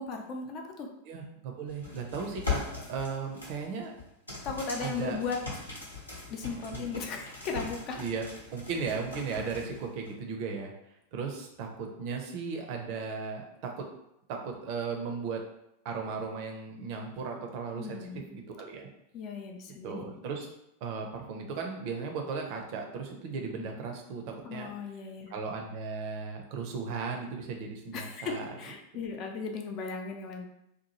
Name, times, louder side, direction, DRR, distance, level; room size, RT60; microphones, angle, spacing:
voice 1, 0.0-0.9 4.4-5.4 6.3-8.0 17.8-18.3 19.1-20.0 24.4-25.3 27.9-30.5, left 4 dB, 35° left, 3 dB, 0.4 m, -36 dB
voice 2, 1.1-3.9 4.8-5.2 6.7-6.9 8.0-8.3 8.5-10.7 11.1-13.9 14.3-15.4 15.8-18.9 19.8-20.5 20.8-24.7 25.3-28.6, right 5 dB, 45° right, 2 dB, 0.5 m, -36 dB
sound 1, 1.7-10.1, left 4 dB, 80° left, 0.8 m, -40 dB
2.8 x 2.2 x 2.9 m, 0.82 s
figure-of-eight pair, 90°, 0 cm